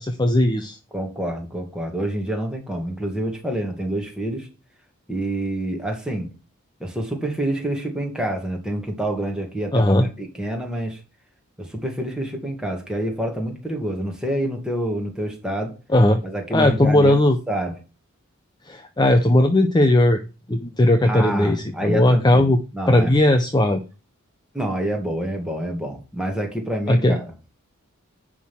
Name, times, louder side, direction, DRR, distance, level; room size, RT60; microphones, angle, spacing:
voice 1, 0.0-0.8 9.7-10.1 15.9-16.2 16.5-17.4 18.7-20.2 20.5-22.6 22.9-23.8 26.9-27.2, left 1 dB, 20° left, 7 dB, 0.6 m, -17 dB
voice 2, 0.9-4.5 5.1-6.3 6.8-11.0 11.7-15.7 16.2-17.1 17.5-17.7 21.0-23.2 24.5-27.2, right 1 dB, 5° right, 1 dB, 2.0 m, -27 dB
10.5 x 3.7 x 5.9 m, 0.32 s
head